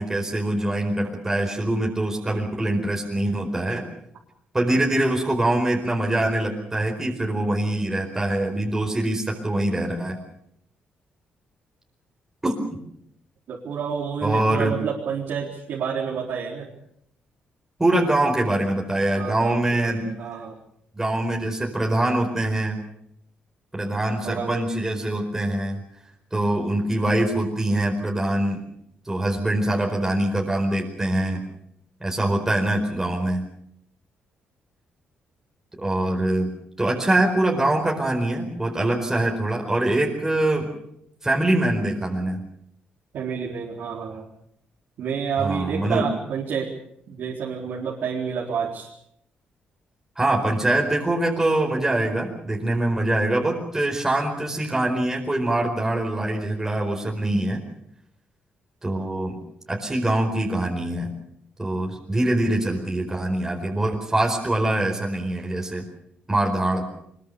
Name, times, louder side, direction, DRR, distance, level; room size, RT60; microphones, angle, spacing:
voice 1, 0.0-3.8 4.5-10.2 12.4-12.5 14.2-14.8 17.8-20.1 20.9-22.8 23.7-25.8 26.3-28.6 29.0-31.4 32.0-33.5 35.8-40.7 41.2-42.4 45.4-46.1 50.2-57.6 58.8-59.4 59.7-61.1 61.6-65.9 66.3-66.9, right 1 dB, 15° right, 0 dB, 4.7 m, -24 dB
voice 2, 13.5-16.7 19.1-20.6 24.2-24.7 43.1-44.3 45.0-46.7 47.1-48.9, right 6 dB, 75° right, -3 dB, 4.2 m, -29 dB
23.5 x 22.0 x 7.0 m, 0.74 s
cardioid pair, 110°, 3 cm